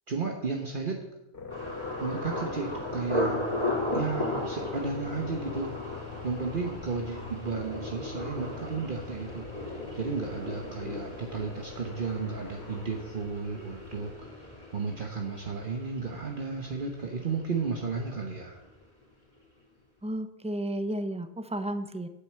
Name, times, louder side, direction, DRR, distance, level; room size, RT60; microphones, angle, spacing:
voice 1, 0.1-1.0 2.0-3.5 3.9-5.7 6.2-14.5 14.7-18.6, right 4 dB, 50° right, 2 dB, 1.2 m, -33 dB
sound 1, 1.3-14.1, left 4 dB, 75° left, 2.6 m, -43 dB
Thunder, 1.5-17.3 17.5-18.2 18.6-18.8, left 1 dB, 25° left, 3.7 m, -36 dB
voice 2, 20.0-22.1, right 1 dB, 5° right, 9 dB, 0.6 m, -33 dB
9.0 x 8.2 x 7.5 m, 0.98 s
omnidirectional pair, 1.1 m